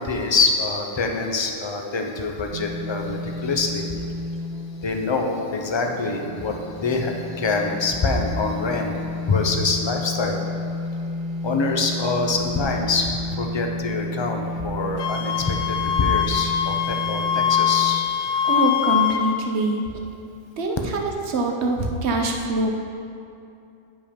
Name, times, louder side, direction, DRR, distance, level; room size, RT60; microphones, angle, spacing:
voice 1, 0.0-4.0 4.8-8.9 9.3-10.4 11.4-18.0, left 3 dB, 35° left, 2 dB, 0.5 m, -25 dB
sound 1, 2.5-18.0, left 2 dB, 90° right, 0.4 m, -32 dB
Wind instrument woodwind instrument, 15.0-19.3, left 10 dB, 90° left, 1.0 m, -23 dB
voice 2, 18.4-19.8 20.6-22.7, right 2 dB, 60° right, 2 dB, 1.0 m, -24 dB
9.4 x 5.4 x 5.1 m, 2.6 s
omnidirectional pair, 1.4 m